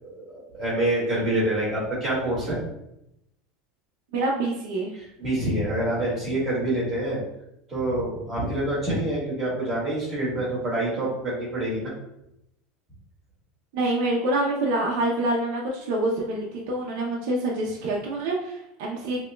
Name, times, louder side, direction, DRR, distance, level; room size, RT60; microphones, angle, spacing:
voice 1, 0.0-2.6 5.2-7.2 7.7-11.9, right 1 dB, 15° right, -7 dB, 1.5 m, -26 dB
voice 2, 4.1-4.9 13.7-19.2, right 2 dB, 60° right, -2 dB, 0.6 m, -26 dB
5.6 x 2.2 x 2.2 m, 0.82 s
supercardioid pair, 165°, 0 cm